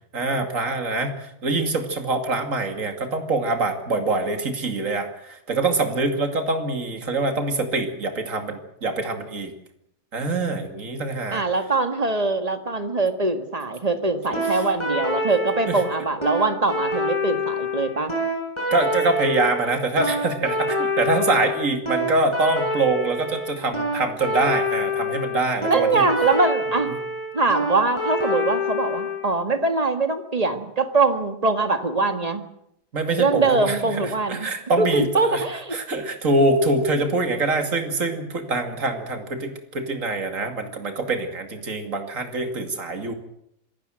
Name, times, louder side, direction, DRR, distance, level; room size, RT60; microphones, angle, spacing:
voice 1, 0.1-9.5 10.1-11.4 14.3-14.5 15.7-15.8 18.7-26.1 32.9-35.4 35.7-43.1, right 2 dB, 55° right, 6 dB, 2.9 m, -24 dB
voice 2, 11.3-18.1 25.7-26.9 27.3-32.4 33.2-34.5 34.8-35.8, right 3 dB, 25° right, 8 dB, 1.8 m, -22 dB
sound 1, 14.3-29.2, left 1 dB, 15° left, 6.5 m, -26 dB
26.0 x 16.5 x 7.8 m, 0.76 s
omnidirectional pair, 1.7 m